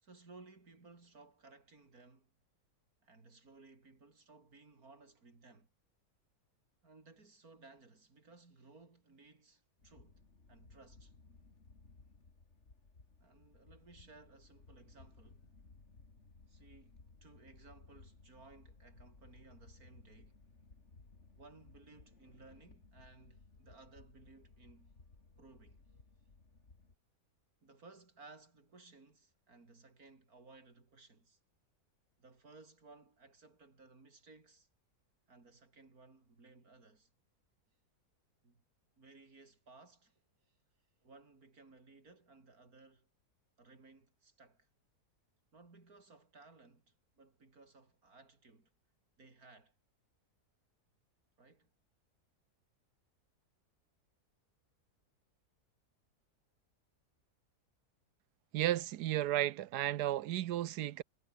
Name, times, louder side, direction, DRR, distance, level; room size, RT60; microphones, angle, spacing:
voice 1, 0.0-2.3 3.0-5.7 6.8-11.1 13.2-15.4 16.5-20.4 21.3-24.9 25.4-25.8 27.6-31.4 32.2-34.7 35.3-37.1 38.4-38.6 39.0-40.2 40.5-40.6 41.0-43.1 43.6-44.7 45.5-48.7 49.2-49.7 51.4-51.7, right 3 dB, 65° right, 4.3 m, -60 dB
sound 1, 9.8-26.9, left 3 dB, 45° left, 3.1 m, -61 dB
voice 2, 58.5-61.0, right 13 dB, 85° right, 1.3 m, -33 dB
omnidirectional pair, 1.7 m